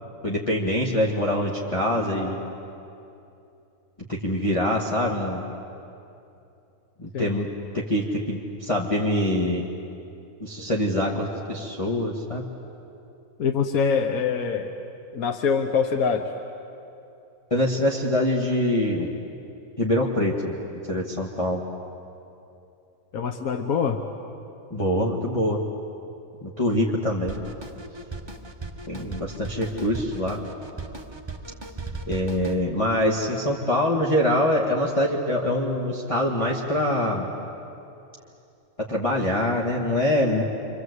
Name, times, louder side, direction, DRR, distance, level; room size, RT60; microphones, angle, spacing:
voice 1, 0.2-2.4 4.1-5.4 7.0-7.5 7.7-9.6 10.4-12.4 17.5-19.1 19.8-20.5 20.9-21.6 24.7-25.6 26.4-27.4 28.9-30.4 32.1-37.3 38.9-40.4, left 1 dB, 25° left, -4 dB, 1.8 m, -24 dB
voice 2, 13.4-14.7 15.1-16.3 23.1-24.0, left 6 dB, 75° left, 5 dB, 1.5 m, -24 dB
Drum kit, 27.3-32.6, right 3 dB, 20° right, 1.1 m, -37 dB
28.0 x 25.0 x 8.1 m, 2.8 s
omnidirectional pair, 1.5 m